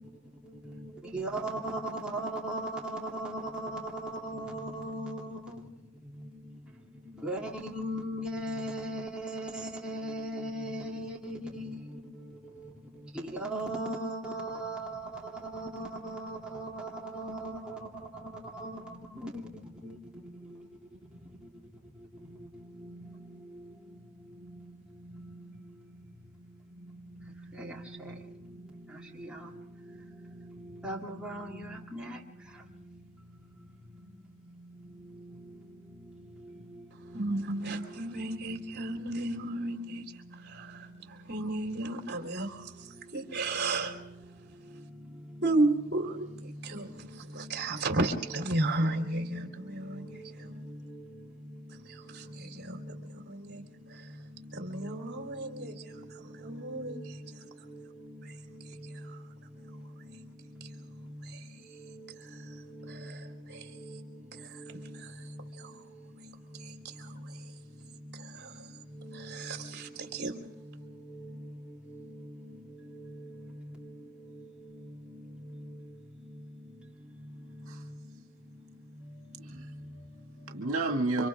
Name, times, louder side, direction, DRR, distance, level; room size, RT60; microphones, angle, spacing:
voice 1, 2.1-2.6 3.2-3.3 4.2-5.4 7.2-7.4 7.7-11.7 13.5-14.8 15.7-16.2 16.5-16.6 17.2-17.5 30.8-31.5, right 1 dB, 5° right, 2.9 m, -36 dB
voice 2, 37.1-40.1 40.3-44.0 45.4-50.6 51.8-53.6 53.9-54.1 54.5-55.8 56.1-57.2 58.2-58.3 59.0-59.2 60.6-60.7 61.2-61.5 62.2-62.5 62.9-63.8 64.3-64.6 64.9-65.3 65.5-65.8 66.5-67.5 68.1-68.7 69.1-70.4, right 2 dB, 50° right, 3.2 m, -34 dB
voice 3, 79.0-81.3, right 2 dB, 70° right, 2.1 m, -33 dB
30.0 x 26.0 x 3.6 m
head